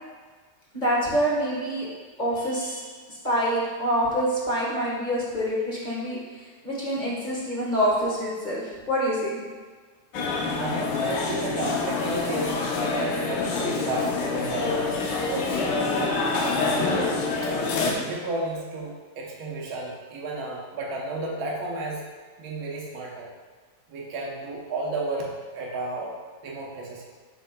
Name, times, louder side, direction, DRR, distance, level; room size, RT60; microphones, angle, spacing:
voice 1, 0.7-1.9 2.2-6.2 6.6-9.3, equal, 30° left, -6 dB, 1.5 m, -26 dB
sound 1, 10.1-17.9, left 3 dB, 90° left, 1.5 m, -26 dB
voice 2, 10.4-14.8 15.3-17.1 17.4-17.5 17.9-22.0 22.4-23.3 23.9-26.1 26.4-27.1, right 2 dB, 65° right, -2 dB, 1.4 m, -33 dB
7.9 x 5.5 x 2.2 m, 1.5 s
omnidirectional pair, 1.9 m